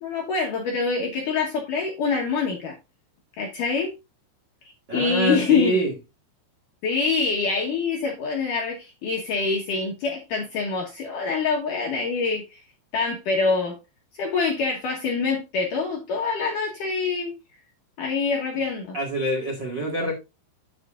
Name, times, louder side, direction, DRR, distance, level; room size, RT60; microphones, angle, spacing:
voice 1, 0.0-2.8 3.4-3.9 4.9-5.8 6.8-12.6 12.9-13.8 14.1-17.3 18.0-19.0, left 4 dB, 70° left, 2.0 m, -25 dB
voice 2, 4.9-5.9 18.9-20.1, right 1 dB, 85° right, 0.9 m, -25 dB
10.5 x 7.9 x 2.5 m
omnidirectional pair, 5.5 m